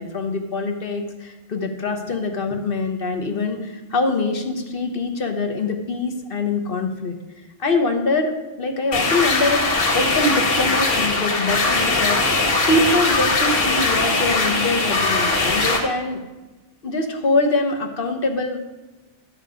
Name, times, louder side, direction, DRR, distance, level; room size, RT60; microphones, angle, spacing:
voice 1, 0.0-7.1 7.6-8.3 8.6-9.6 9.9-16.2 16.8-18.6, left 2 dB, 50° left, 4 dB, 1.3 m, -24 dB
sound 1, 8.9-15.8, left 3 dB, 80° left, 2.2 m, -20 dB
12.0 x 6.3 x 5.1 m, 1.2 s
omnidirectional pair, 1.2 m